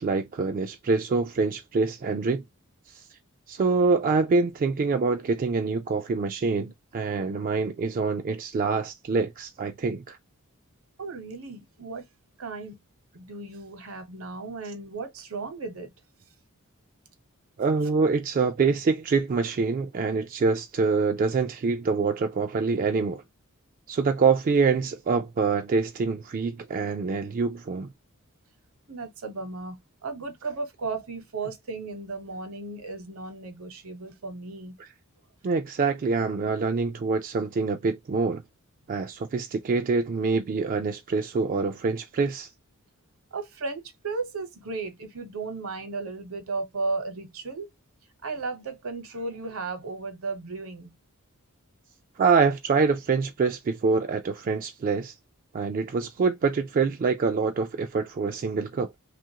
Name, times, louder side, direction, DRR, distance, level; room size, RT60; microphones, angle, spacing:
voice 1, 0.0-2.4 2.9-3.0 3.5-10.2 17.6-23.2 23.9-27.9 34.8-34.9 35.4-38.4 38.9-42.5 52.2-55.1 55.5-59.0, right 4 dB, 40° right, 0.3 m, -25 dB
voice 2, 11.0-12.1 12.4-12.7 13.1-15.9 28.9-34.8 43.3-47.7 48.2-50.9, right 3 dB, 70° right, 1.0 m, -35 dB
2.9 x 2.5 x 2.7 m
head